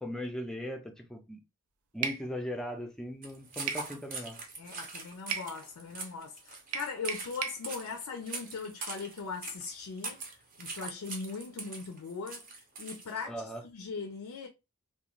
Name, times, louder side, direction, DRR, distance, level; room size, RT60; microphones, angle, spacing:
voice 1, 0.0-1.4 1.9-4.4 13.3-13.6, equal, 5° left, 0.4 m, -38 dB
sound 1, 2.0-2.2 3.7-3.9 5.3-5.5 6.7-7.6, right 7 dB, 90° right, 0.4 m, -34 dB
sound 2, 3.2-13.2, right 3 dB, 40° right, 0.6 m, -43 dB
voice 2, 4.6-10.2 10.6-14.5, left 5 dB, 80° left, 0.4 m, -40 dB
2.4 x 2.2 x 3.0 m
head